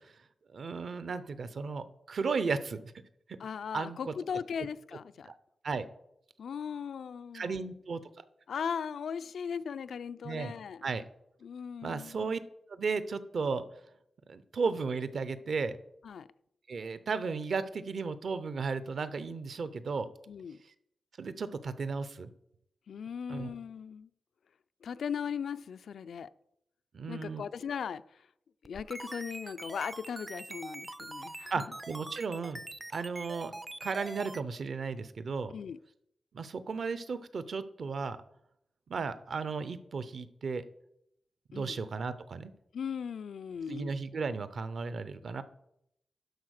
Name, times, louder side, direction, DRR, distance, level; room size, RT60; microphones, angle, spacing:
voice 1, 0.5-2.8 3.7-4.1 5.2-5.3 5.6-5.9 7.3-8.0 10.2-10.5 10.8-11.0 11.8-12.4 12.7-13.6 14.3-15.8 16.7-20.1 21.2-22.3 23.3-23.5 26.9-27.4 31.5-32.6 32.9-33.5 33.8-35.5 36.3-38.2 38.9-40.6 41.5-42.5 43.7-45.4, right 4 dB, 55° right, 0.6 m, -34 dB
voice 2, 3.4-5.3 6.4-7.7 8.5-10.8 11.4-12.3 16.0-16.3 20.3-20.6 22.9-24.1 24.8-26.3 27.1-28.0 28.6-31.6 35.5-35.8 41.5-41.8 42.7-44.0, left 7 dB, 90° left, 0.3 m, -38 dB
sound 1, 28.7-34.4, right 2 dB, 15° right, 0.3 m, -43 dB
11.5 x 4.2 x 6.4 m
wide cardioid pair, 165°, 0 cm